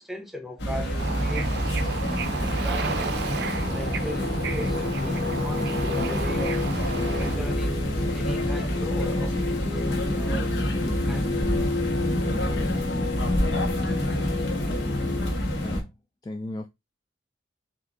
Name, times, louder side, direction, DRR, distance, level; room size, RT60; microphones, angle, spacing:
voice 1, 0.0-1.7 2.3-3.3 3.7-6.6 7.2-11.3, equal, ahead, 0.8 m, -38 dB
sound 1, 0.6-15.8, equal, 80° left, 1.3 m, -27 dB
Bird / Ocean, 1.0-7.4, right 5 dB, 60° right, 0.5 m, -34 dB
Singing, 1.6-15.3, left 3 dB, 65° left, 1.6 m, -33 dB
voice 2, 15.5-16.0 16.2-16.7, left 1 dB, 20° left, 0.4 m, -36 dB
4.5 x 2.5 x 3.9 m
head